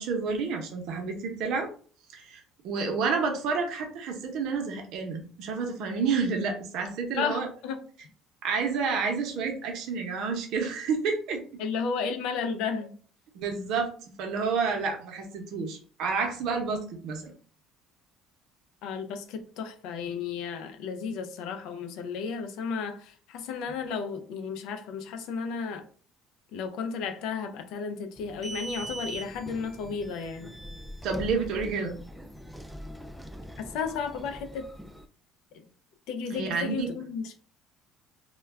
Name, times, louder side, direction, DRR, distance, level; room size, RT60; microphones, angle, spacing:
voice 1, 0.0-1.7 2.1-7.5 8.4-11.4 13.3-17.3 31.0-32.0 36.3-36.9, right 5 dB, 70° right, 0.7 m, -29 dB
voice 2, 7.2-7.8 11.6-13.0 18.8-25.8 26.5-30.5 33.6-34.7 35.5-35.7 36.1-37.4, left 5 dB, 75° left, 0.4 m, -33 dB
sound 1, 28.2-35.0, right 1 dB, ahead, 0.3 m, -42 dB
2.2 x 2.2 x 3.3 m
supercardioid pair, 95°, 0 cm